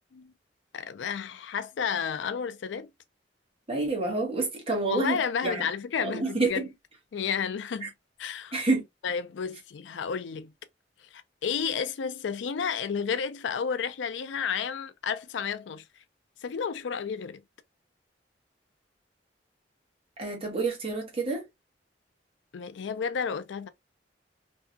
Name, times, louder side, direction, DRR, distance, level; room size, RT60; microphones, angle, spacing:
voice 1, 0.7-2.9 4.9-6.7 7.1-7.9 8.2-8.6 9.0-10.5 11.1-15.8 16.4-17.4 22.5-23.7, left 6 dB, 90° left, 0.4 m, -31 dB
voice 2, 3.7-5.7 6.0-6.5 7.8-7.9 8.5-8.8 20.2-21.4, right 3 dB, 35° right, 1.1 m, -28 dB
2.7 x 2.3 x 2.4 m
head